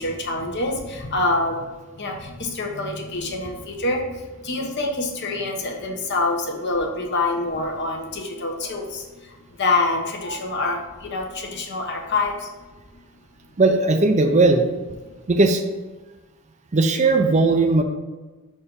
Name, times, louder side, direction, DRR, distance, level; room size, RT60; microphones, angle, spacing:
voice 1, 0.0-12.5, left 2 dB, 50° left, 1 dB, 1.1 m, -26 dB
voice 2, 13.6-14.6 15.3-15.6 16.7-17.8, right 3 dB, 30° right, 6 dB, 0.5 m, -17 dB
5.8 x 4.4 x 5.2 m, 1.2 s
head